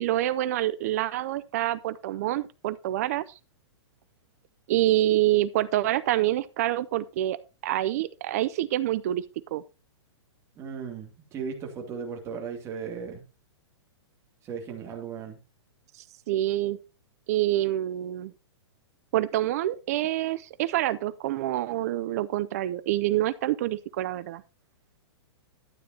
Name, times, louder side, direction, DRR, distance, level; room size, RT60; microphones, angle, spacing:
voice 1, 0.0-3.2 4.7-7.4 7.6-9.2 9.5-9.6 16.3-16.8 17.3-18.3 19.1-24.4, right 14 dB, 35° right, 0.5 m, -26 dB
voice 2, 10.6-13.2 14.4-15.4, right 6 dB, 20° right, 2.4 m, -36 dB
12.0 x 9.0 x 2.8 m
hypercardioid pair, 165°, 15 cm